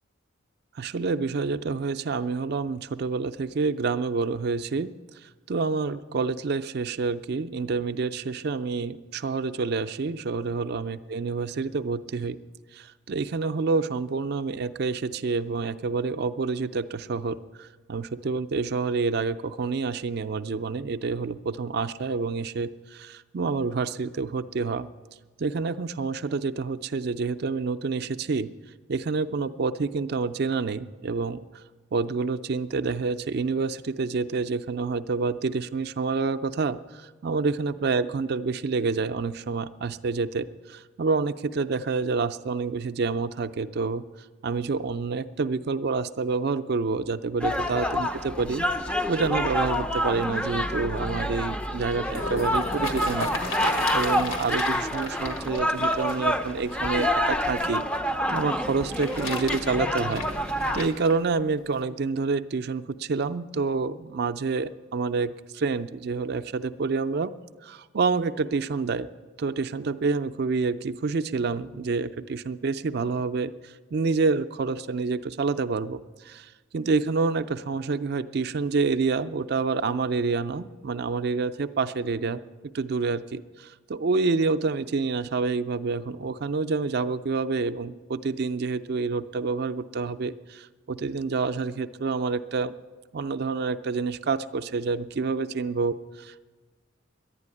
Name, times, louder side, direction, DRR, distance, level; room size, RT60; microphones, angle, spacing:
voice 1, 0.8-4.9 5.5-12.4 12.7-24.9 25.4-28.5 28.9-31.4 31.9-44.0 44.4-57.8 58.3-60.2 60.7-67.3 67.6-69.1 69.4-82.4 82.7-92.8 93.1-96.4, right 4 dB, 55° right, 10 dB, 0.4 m, -28 dB
sound 1, 47.4-60.9, equal, 5° left, 0.4 m, -27 dB
sound 2, 51.7-57.8 58.6-61.2 61.8-61.9, left 2 dB, 85° left, 1.8 m, -36 dB
11.0 x 9.8 x 9.7 m, 1.3 s
head